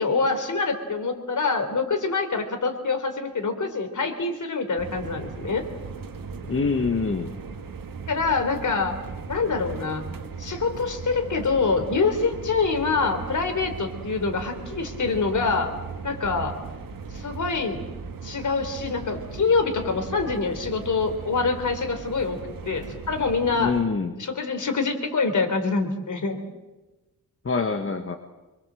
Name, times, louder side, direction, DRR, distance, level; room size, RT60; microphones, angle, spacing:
voice 1, 0.0-5.6 8.1-8.9 9.3-10.0 10.4-15.7 16.0-16.5 17.1-17.8 18.2-22.4 22.7-23.7 24.2-26.4, left 4 dB, 55° left, 6 dB, 3.9 m, -25 dB
sound 1, 4.8-23.9, right 5 dB, 70° right, 1.9 m, -38 dB
voice 2, 6.5-7.3 23.6-24.1 27.4-28.2, left 4 dB, 40° left, 5 dB, 1.4 m, -25 dB
27.0 x 23.0 x 7.7 m, 1.1 s
wide cardioid pair, 160°, 35 cm